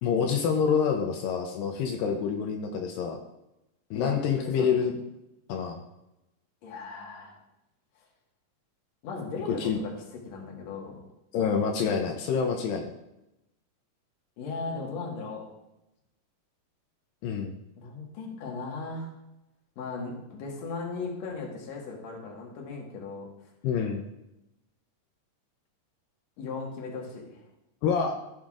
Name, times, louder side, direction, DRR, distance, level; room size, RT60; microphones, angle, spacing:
voice 1, 0.0-3.2 3.9-4.9 5.5-5.8 9.6-9.8 11.3-12.9 17.2-17.5 23.6-24.1 27.8-28.2, left 6 dB, 85° left, 3 dB, 2.4 m, -27 dB
voice 2, 3.9-4.9 6.6-7.4 9.0-9.9 10.3-11.0 14.4-15.5 17.8-19.1 19.8-23.3 26.4-27.4, left 4 dB, 55° left, -1 dB, 2.4 m, -37 dB
15.0 x 5.7 x 2.4 m, 0.91 s
omnidirectional pair, 4.0 m